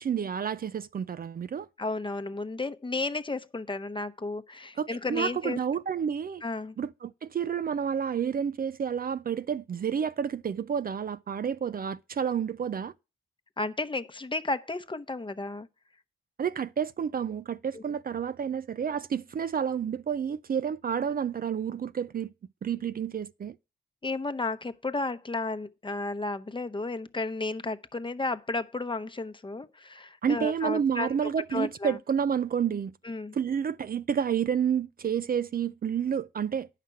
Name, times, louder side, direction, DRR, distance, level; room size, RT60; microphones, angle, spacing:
voice 1, 0.0-1.7 4.8-6.4 6.8-12.9 16.4-22.3 22.6-23.6 30.2-32.9 33.3-36.7, right 7 dB, 45° right, 0.5 m, -30 dB
voice 2, 1.8-5.6 6.4-6.8 13.6-15.7 17.7-17.8 24.0-31.2 31.5-32.0 33.0-33.4, left 3 dB, 25° left, 0.9 m, -33 dB
9.0 x 5.9 x 5.7 m
supercardioid pair, 50°, 21 cm